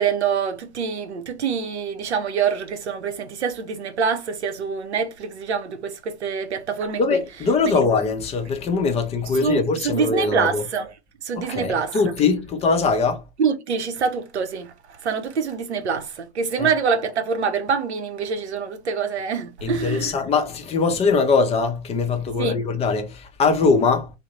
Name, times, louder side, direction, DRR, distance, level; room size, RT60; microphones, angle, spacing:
voice 1, 0.0-7.2 7.6-7.8 9.4-10.9 11.2-12.0 13.4-14.7 15.0-20.1 22.4-22.6, right 6 dB, 80° right, 0.6 m, -25 dB
voice 2, 7.0-10.6 11.4-13.2 16.6-16.7 19.6-24.1, left 4 dB, 20° left, 0.5 m, -22 dB
2.3 x 2.0 x 3.0 m
figure-of-eight pair, 90°, 33 cm